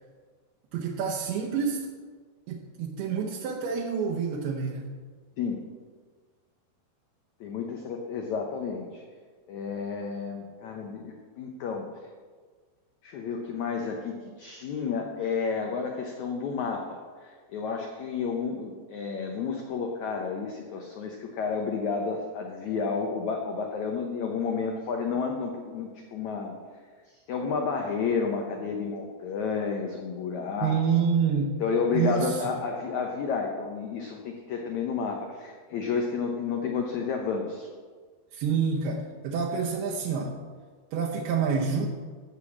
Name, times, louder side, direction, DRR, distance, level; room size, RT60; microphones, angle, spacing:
voice 1, 0.7-1.9 2.5-4.9 30.6-31.6 31.9-32.5 38.3-40.4 40.9-41.9, right 6 dB, 75° right, -2 dB, 2.7 m, -28 dB
voice 2, 7.4-9.0 9.5-11.8 13.0-26.5 27.3-31.0 31.6-37.7, left 5 dB, 90° left, 2 dB, 1.6 m, -31 dB
14.0 x 4.9 x 7.2 m, 1.5 s
omnidirectional pair, 4.7 m